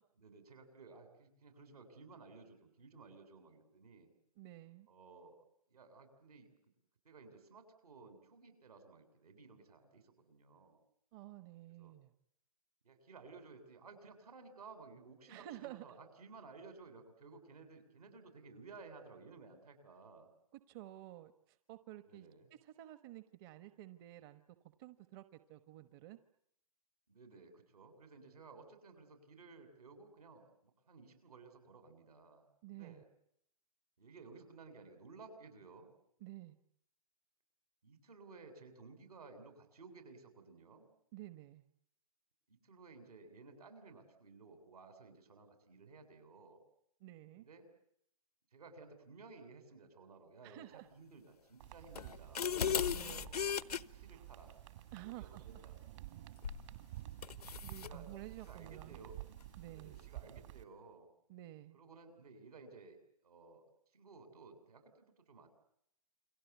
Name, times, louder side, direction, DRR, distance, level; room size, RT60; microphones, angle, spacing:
voice 1, 0.2-4.1 4.9-5.4 5.7-6.5 7.0-10.8 11.8-11.9 12.8-20.3 22.1-22.5 27.1-32.4 32.7-33.0 34.0-35.9 37.8-40.9 42.5-46.6 47.4-47.7 48.5-52.7 53.1-53.5 53.9-54.5 54.9-55.8 57.7-58.1 58.5-59.2 59.7-61.1 61.7-63.7 63.9-65.5, right 4 dB, 80° right, 7 dB, 7.9 m, -56 dB
voice 2, 4.4-4.9 11.1-12.1 15.3-16.0 20.7-24.4 24.8-26.2 32.6-33.0 36.2-36.6 41.1-41.6 47.0-47.4 50.4-50.9 52.9-53.3 54.9-55.6 57.6-59.0 59.6-59.9 61.3-61.8, right 15 dB, 40° right, 11 dB, 1.2 m, -52 dB
sound 1, 51.6-60.6, right 15 dB, 55° right, 2.2 m, -51 dB
sound 2, 52.0-53.8 56.4-56.7 57.2-58.0, left 7 dB, 85° left, 1.1 m, -36 dB
29.0 x 23.5 x 8.3 m, 0.75 s
hypercardioid pair, 130°, 19 cm